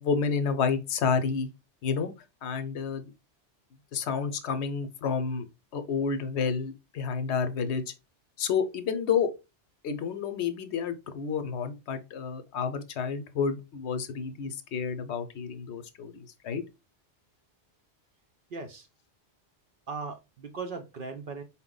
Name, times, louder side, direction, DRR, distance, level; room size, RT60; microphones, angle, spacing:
voice 1, 0.0-1.5 1.8-2.1 2.4-3.1 3.9-5.4 5.7-7.8 8.4-9.3 9.8-16.6, left 6 dB, 75° left, 0.9 m, -30 dB
voice 2, 18.5-18.9 19.9-21.4, right 4 dB, 60° right, 0.7 m, -38 dB
4.4 x 2.1 x 3.8 m
omnidirectional pair, 1.2 m